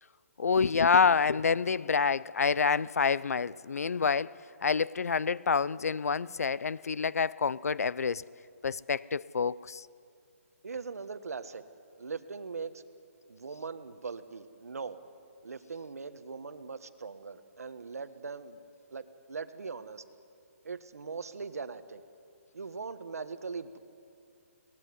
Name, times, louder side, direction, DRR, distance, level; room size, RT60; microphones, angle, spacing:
voice 1, 0.4-8.2 8.6-9.9, left 5 dB, 85° left, 0.6 m, -27 dB
voice 2, 10.6-11.6 12.0-12.8 13.3-15.0 15.4-18.6 18.9-20.0 20.6-22.0 22.5-23.8, right 5 dB, 80° right, 1.5 m, -40 dB
22.5 x 18.5 x 9.7 m
hypercardioid pair, 170°, 8 cm